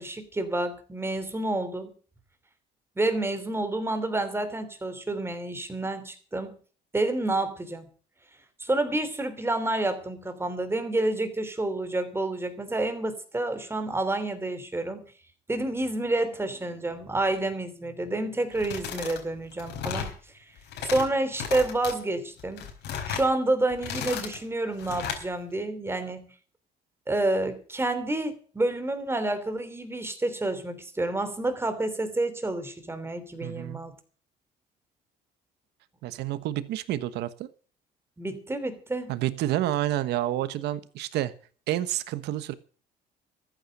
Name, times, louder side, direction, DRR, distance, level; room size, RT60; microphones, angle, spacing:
voice 1, 0.0-1.9 3.0-6.6 6.9-7.9 8.6-15.0 15.5-20.1 20.8-22.7 23.0-26.3 27.1-33.9 38.2-39.1, right 2 dB, 15° right, 9 dB, 3.1 m, -29 dB
sound 1, 18.5-19.2 19.5-20.2 20.6-21.1 21.4-21.9 22.4-23.3 23.7-24.4 24.8-25.2, left 8 dB, 80° left, 4.5 m, -34 dB
voice 2, 33.4-33.8 36.0-37.5 39.1-41.3 41.7-42.5, right 13 dB, 80° right, 14 dB, 1.2 m, -29 dB
14.0 x 8.9 x 7.8 m, 0.42 s
cardioid pair, 110°, 17 cm